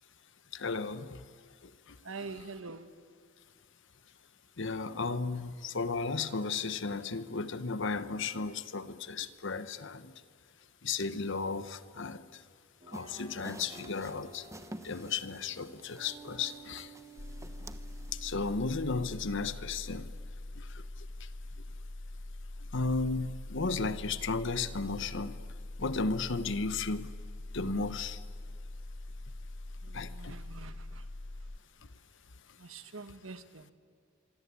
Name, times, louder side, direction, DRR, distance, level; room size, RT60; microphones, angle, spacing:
voice 1, 0.5-1.2 1.9-2.0 4.6-10.1 10.8-12.4 12.9-14.5 14.8-16.9 18.1-20.1 20.5-21.3 22.6-25.4 25.8-27.1 27.5-28.2 29.9-30.3, left 4 dB, 65° left, 1.1 m, -34 dB
voice 2, 2.0-2.9 29.8-31.0 32.6-33.7, right 4 dB, 75° right, 1.5 m, -45 dB
sound 1, 12.8-18.4, right 2 dB, 35° right, 4.5 m, -53 dB
sound 2, 12.9-18.1, right 1 dB, 15° right, 1.0 m, -50 dB
sound 3, 17.2-31.6, left 2 dB, 35° left, 0.7 m, -43 dB
25.0 x 24.5 x 8.5 m
head